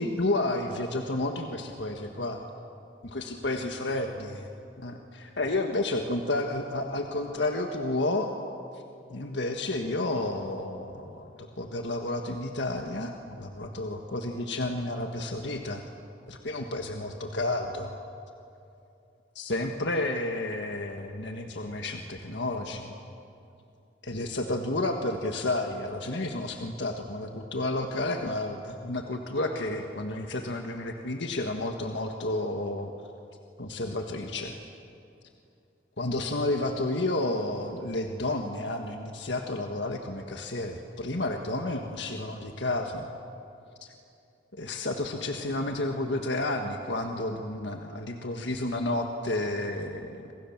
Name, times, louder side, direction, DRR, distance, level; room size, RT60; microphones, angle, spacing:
voice 1, 0.0-2.4 3.0-4.5 4.8-8.3 9.1-15.8 16.3-18.0 19.3-22.9 24.0-32.9 33.6-34.6 36.0-43.1 44.5-50.3, left 2 dB, 75° left, 4 dB, 1.6 m, -31 dB
27.0 x 27.0 x 7.4 m, 2.6 s
head